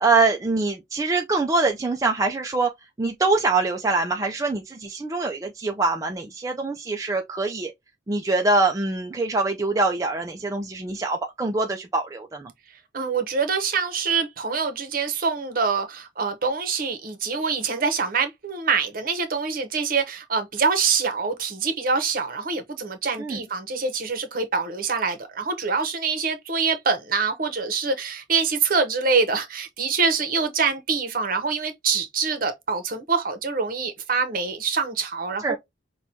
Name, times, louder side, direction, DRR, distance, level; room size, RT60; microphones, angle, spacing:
voice 1, 0.0-2.7 3.0-7.7 8.1-12.5 23.2-23.4 35.4-35.6, right 3 dB, 20° right, 0.4 m, -24 dB
voice 2, 12.9-35.6, right 5 dB, 50° right, 0.8 m, -25 dB
5.8 x 2.3 x 2.7 m
head